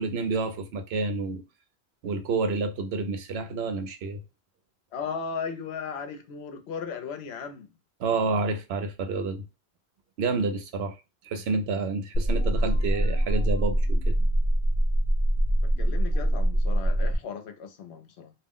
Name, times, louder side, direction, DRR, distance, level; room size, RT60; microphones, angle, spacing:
voice 1, 0.0-1.4 2.0-4.2 8.0-9.4 10.2-11.0 11.2-14.2, right 3 dB, 75° right, 0.8 m, -29 dB
voice 2, 4.9-7.7 15.8-18.3, left 6 dB, 75° left, 0.9 m, -36 dB
sound 1, 12.1-17.1, right 1 dB, 50° left, 0.3 m, -24 dB
2.4 x 2.0 x 3.5 m
omnidirectional pair, 1.1 m